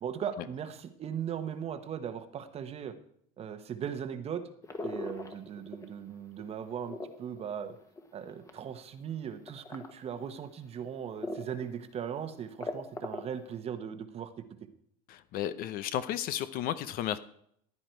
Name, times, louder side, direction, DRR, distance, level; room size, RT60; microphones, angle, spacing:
voice 1, 0.0-2.9 3.4-4.4 4.8-7.8 8.1-14.4, right 8 dB, 35° right, 9 dB, 1.1 m, -38 dB
sound 1, 4.6-6.0 6.4-8.7 9.5-9.9 10.4-10.5 11.2-11.6 12.0-12.1 12.3-13.5, left 2 dB, 15° left, 1.4 m, -39 dB
voice 2, 15.1-17.2, left 11 dB, 50° left, 13 dB, 0.7 m, -33 dB
15.5 x 9.8 x 4.5 m, 0.67 s
cardioid pair, 135°, 19 cm